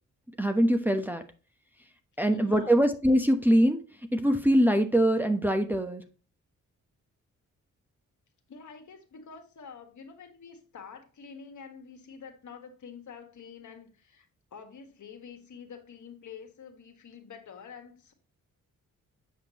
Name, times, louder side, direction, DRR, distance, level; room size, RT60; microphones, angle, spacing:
voice 1, 0.4-1.2 2.2-3.8 4.1-6.0, equal, 5° right, 1.0 m, -23 dB
voice 2, 2.3-2.9 8.5-14.3 14.5-18.1, left 6 dB, 60° left, 1.6 m, -47 dB
8.1 x 5.1 x 3.0 m
cardioid pair, 60°, 33 cm